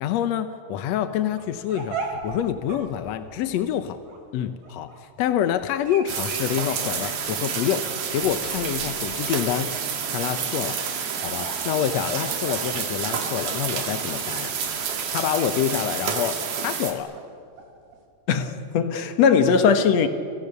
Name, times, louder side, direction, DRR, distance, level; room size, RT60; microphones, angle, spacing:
voice 1, 0.0-4.0 4.3-9.8 10.1-14.5 15.1-17.1, left 10 dB, 75° left, 1.6 m, -27 dB
sound 1, 1.4-18.0, right 4 dB, 65° right, 5.0 m, -40 dB
sound 2, 6.1-16.9, right 7 dB, 85° right, 4.3 m, -29 dB
voice 2, 18.3-20.1, left 6 dB, 60° left, 2.2 m, -19 dB
29.5 x 27.5 x 6.8 m
omnidirectional pair, 4.1 m